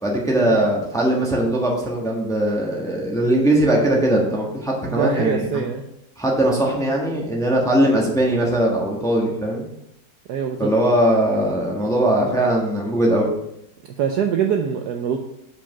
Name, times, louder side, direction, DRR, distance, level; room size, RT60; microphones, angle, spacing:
voice 1, 0.0-5.5 6.2-9.6 10.6-13.3, right 1 dB, ahead, -2 dB, 0.9 m, -20 dB
voice 2, 4.9-5.8 10.3-10.7 14.0-15.2, right 7 dB, 70° right, 4 dB, 1.0 m, -23 dB
5.3 x 5.2 x 5.8 m, 0.81 s
omnidirectional pair, 2.2 m